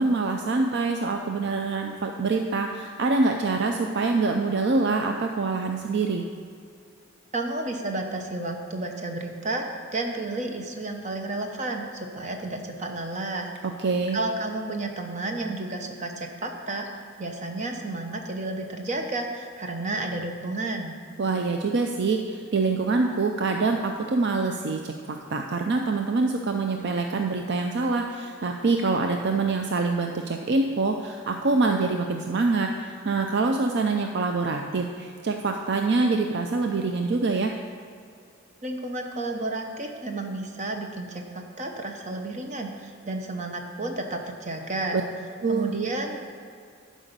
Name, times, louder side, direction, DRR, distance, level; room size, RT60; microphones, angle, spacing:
voice 1, 0.0-6.3 13.8-14.2 21.2-37.5 44.9-45.0 45.4-45.7, right 3 dB, 55° right, 4 dB, 0.5 m, -25 dB
voice 2, 7.3-9.7 9.9-13.5 14.1-16.9 17.2-21.0 38.6-45.0 45.5-46.2, right 2 dB, 35° right, 3 dB, 0.9 m, -31 dB
11.0 x 5.1 x 6.7 m, 2.3 s
head